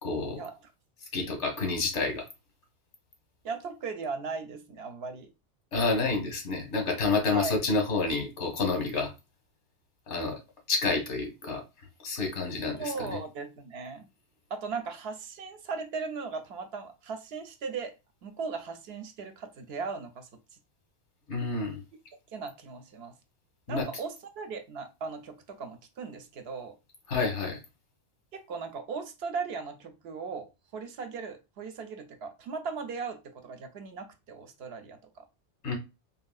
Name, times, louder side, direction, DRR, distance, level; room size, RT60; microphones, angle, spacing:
voice 1, 0.0-0.4 1.1-2.2 5.7-9.1 10.1-10.4 10.7-11.6 12.0-13.1 21.3-21.8 23.7-23.9 27.1-27.6 35.6-35.8, left 3 dB, 90° left, 1.3 m, -29 dB
voice 2, 3.4-5.3 7.3-7.6 12.8-14.0 14.5-17.9 18.2-20.3 22.3-23.1 23.7-26.7 28.3-35.2, right 5 dB, 65° right, 0.8 m, -37 dB
3.5 x 2.7 x 2.3 m
omnidirectional pair, 1.2 m